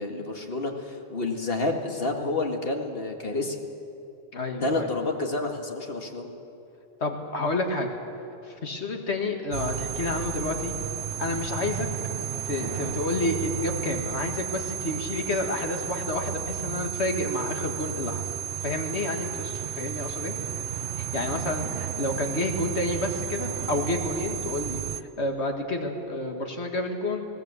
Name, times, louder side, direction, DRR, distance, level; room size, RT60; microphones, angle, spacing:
voice 1, 0.0-3.6 4.6-6.3, left 2 dB, 60° left, 3 dB, 2.0 m, -29 dB
voice 2, 4.3-4.9 7.0-7.9 8.6-10.7 11.2-11.9 12.5-18.2 18.6-20.3 21.0-27.3, left 2 dB, 75° left, 3 dB, 2.2 m, -29 dB
sound 1, 9.5-25.0, right 10 dB, 85° right, 1.0 m, -33 dB
21.0 x 18.0 x 8.2 m, 2.8 s
omnidirectional pair, 1.1 m